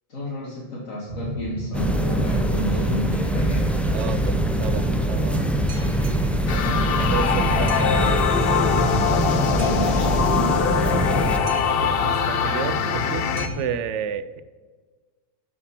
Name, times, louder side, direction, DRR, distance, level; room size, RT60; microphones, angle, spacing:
voice 1, 0.1-3.7 9.5-11.2, equal, 90° left, -5 dB, 2.2 m, -32 dB
Boat Water vehicle, 1.1-13.6, equal, 85° right, 1.4 m, -32 dB
sound 1, 1.7-11.4, right 1 dB, ahead, 0.4 m, -23 dB
voice 2, 3.9-5.5 7.0-8.3 12.0-13.3 13.6-14.4, right 8 dB, 70° right, 14 dB, 0.8 m, -31 dB
sound 2, 6.5-13.5, left 8 dB, 55° left, 0.7 m, -23 dB
11.5 x 5.1 x 5.7 m, 1.4 s
omnidirectional pair, 1.4 m